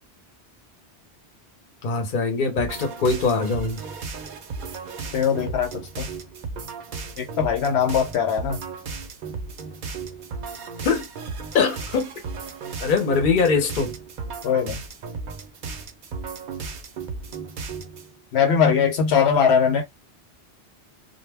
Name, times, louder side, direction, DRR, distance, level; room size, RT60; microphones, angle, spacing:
voice 1, 1.8-3.8 10.8-11.1 11.5-12.1 12.8-13.9, left 4 dB, 50° left, 0.8 m, -22 dB
sound 1, 2.6-18.1, right 4 dB, 55° right, 0.6 m, -35 dB
voice 2, 5.1-6.1 7.2-8.6 14.4-14.8 18.3-19.8, left 7 dB, 75° left, 0.9 m, -21 dB
2.2 x 2.0 x 3.3 m
omnidirectional pair, 1.1 m